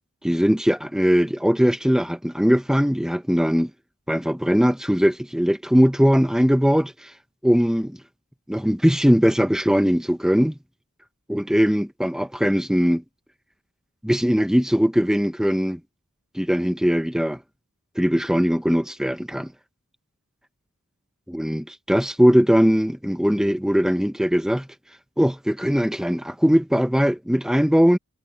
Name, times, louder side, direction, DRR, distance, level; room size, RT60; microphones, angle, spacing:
voice 1, 0.2-3.7 4.1-7.1 7.4-8.0 8.5-10.6 11.3-13.0 14.0-15.8 16.3-17.4 18.0-19.5 21.3-24.7 25.2-28.0, equal, 5° right, 0.9 m, -20 dB
head